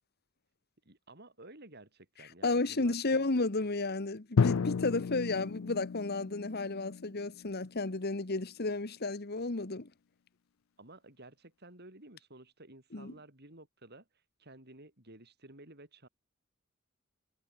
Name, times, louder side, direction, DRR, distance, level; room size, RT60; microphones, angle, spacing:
voice 1, 0.8-3.3 10.8-14.1 14.4-16.1, right 2 dB, 55° right, 7.6 m, -53 dB
voice 2, 2.4-9.9 12.9-13.1, left 3 dB, 50° left, 1.4 m, -32 dB
Drum, 4.4-8.1, left 5 dB, 90° left, 0.5 m, -33 dB
head